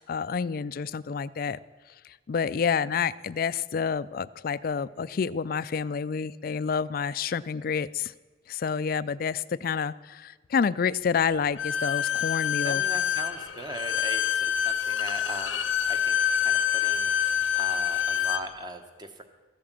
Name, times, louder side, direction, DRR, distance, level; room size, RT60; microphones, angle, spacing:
voice 1, 0.0-1.6 2.0-8.1 8.5-12.8, left 6 dB, 50° left, 17 dB, 0.3 m, -29 dB
Bowed string instrument, 11.6-18.5, left 9 dB, 85° left, 0.8 m, -26 dB
voice 2, 12.6-19.2, right 1 dB, 20° right, 7 dB, 1.1 m, -39 dB
14.0 x 8.6 x 7.5 m, 1.3 s
head